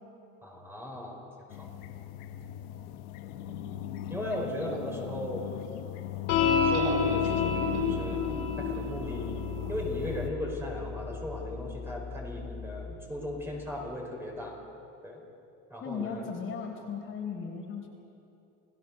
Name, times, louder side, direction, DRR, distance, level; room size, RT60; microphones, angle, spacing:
voice 1, 0.4-1.2 1.6-1.7 4.1-5.5 6.6-9.4 9.7-14.6 15.0-15.2 15.7-16.3, left 1 dB, 5° right, -1 dB, 5.2 m, -37 dB
sound 1, 1.5-10.3, left 12 dB, 80° left, 1.3 m, -38 dB
sound 2, 6.3-12.9, left 5 dB, 60° left, 4.8 m, -31 dB
voice 2, 15.8-17.9, left 6 dB, 40° left, 0 dB, 4.1 m, -36 dB
29.0 x 17.5 x 6.7 m, 2.8 s
cardioid pair, 130°, 31 cm